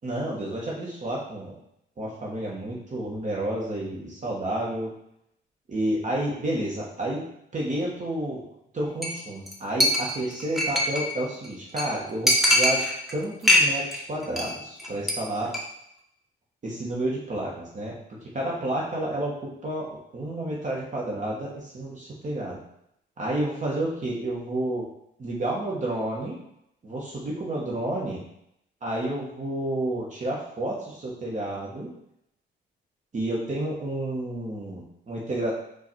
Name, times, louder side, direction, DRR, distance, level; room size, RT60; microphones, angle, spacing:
voice 1, 0.0-1.6 2.0-4.9 5.7-7.2 7.5-8.4 8.7-15.5 16.6-17.9 18.2-22.6 23.2-24.9 25.2-26.4 26.8-28.2 28.8-31.9 33.1-35.5, right 1 dB, 40° right, -4 dB, 1.2 m, -30 dB
Chink clink, 9.0-9.2 9.5-9.6 9.8-11.1 11.4-11.5 11.8-11.9 12.3-13.1 13.4-14.0 14.2-14.5 14.8-15.1 15.4-15.6, left 1 dB, ahead, 1.0 m, -22 dB
4.6 x 2.5 x 4.3 m, 0.75 s
cardioid pair, 90°, 20 cm